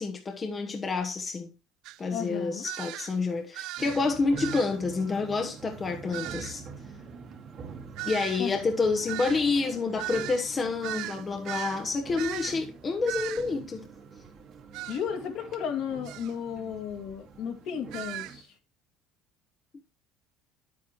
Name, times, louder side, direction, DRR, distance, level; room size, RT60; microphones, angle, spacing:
voice 1, 0.0-1.5 2.0-6.6 8.0-13.9, left 4 dB, 25° left, 1.0 m, -28 dB
sound 1, 1.8-2.0 2.6-3.2 3.5-4.1 4.4-4.7 6.1-6.6 8.0-11.8 12.2-12.6 13.1-13.5 14.7-15.0 16.0-16.3 17.9-18.4, right 16 dB, 70° right, 0.3 m, -38 dB
voice 2, 2.1-2.7 8.4-8.5 14.9-18.5, left 8 dB, 65° left, 2.2 m, -34 dB
sound 2, 3.8-18.4, right 5 dB, 45° right, 1.8 m, -45 dB
9.4 x 8.5 x 3.1 m
cardioid pair, 125°, 0 cm